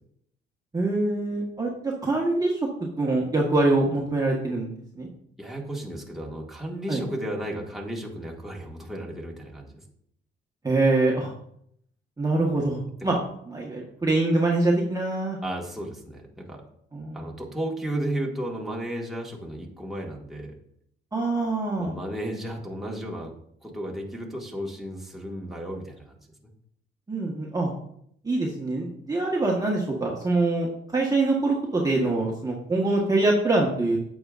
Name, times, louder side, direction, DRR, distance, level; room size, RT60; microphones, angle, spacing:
voice 1, 0.7-5.1 6.9-7.0 10.6-11.3 12.2-13.2 13.5-15.4 16.9-17.3 21.1-22.0 27.1-27.7 28.2-34.0, right 2 dB, 20° right, -2 dB, 1.3 m, -24 dB
voice 2, 5.4-9.8 13.1-13.2 15.4-16.6 17.1-20.5 21.8-23.3 23.6-26.2, right 1 dB, ahead, -2 dB, 1.7 m, -34 dB
8.7 x 7.4 x 2.5 m, 0.71 s
cardioid pair, 90°, 20 cm